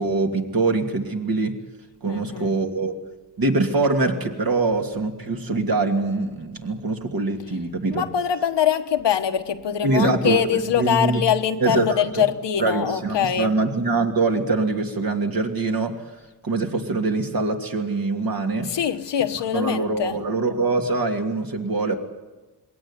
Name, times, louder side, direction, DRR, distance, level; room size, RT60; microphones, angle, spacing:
voice 1, 0.0-1.5 2.0-3.0 3.4-8.1 9.8-11.2 11.6-12.0 12.6-15.9 16.4-18.7 19.5-22.0, right 3 dB, 55° right, 2.8 m, -23 dB
voice 2, 2.1-2.6 7.9-13.6 18.6-20.2, left 9 dB, 80° left, 1.3 m, -23 dB
21.0 x 17.5 x 9.9 m
cardioid pair, 90°, 42 cm